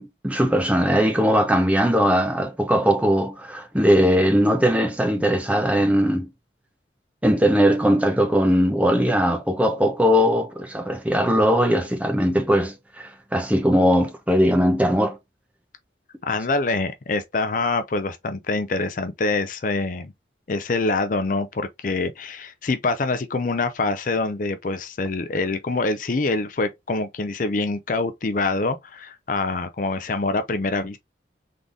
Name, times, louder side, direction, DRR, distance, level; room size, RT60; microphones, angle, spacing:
voice 1, 0.0-6.3 7.2-15.2, equal, 10° right, 0.8 m, -20 dB
voice 2, 16.2-20.1 20.5-31.0, left 3 dB, 45° left, 0.5 m, -25 dB
3.8 x 3.8 x 3.5 m
head